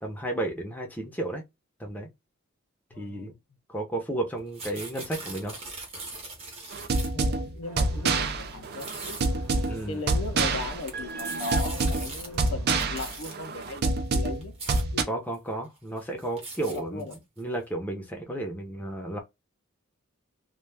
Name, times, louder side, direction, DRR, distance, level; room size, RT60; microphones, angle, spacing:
voice 1, 0.0-1.4 1.8-2.1 3.0-3.3 3.7-5.5 9.7-10.0 15.1-17.1 17.4-19.2, right 1 dB, 10° left, 0.6 m, -33 dB
voice 2, 2.9-3.4 7.1-9.3 9.9-15.2 16.7-17.1, left 3 dB, 65° left, 0.4 m, -38 dB
sound 1, 4.4-7.3 8.1-8.2 8.6-9.3 10.5-12.5 12.8-13.3 14.0-14.1 14.4-14.8 15.3-15.4 15.8-17.4, right 3 dB, 30° right, 0.8 m, -40 dB
sound 2, 6.7-15.0, right 3 dB, 50° right, 0.4 m, -27 dB
sound 3, 7.6-12.8, right 1 dB, 80° right, 0.9 m, -47 dB
2.2 x 2.1 x 3.2 m
head